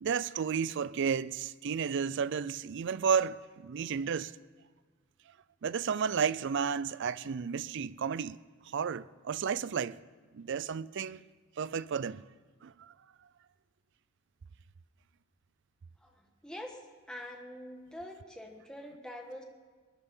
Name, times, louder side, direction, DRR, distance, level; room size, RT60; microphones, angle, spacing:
voice 1, 0.0-4.3 5.6-8.4 8.7-10.0 10.3-11.2 11.6-12.2 12.6-12.9, right 6 dB, 55° right, 0.4 m, -32 dB
voice 2, 16.0-16.8 17.1-19.4, left 1 dB, 5° left, 1.4 m, -45 dB
21.0 x 10.5 x 5.6 m
head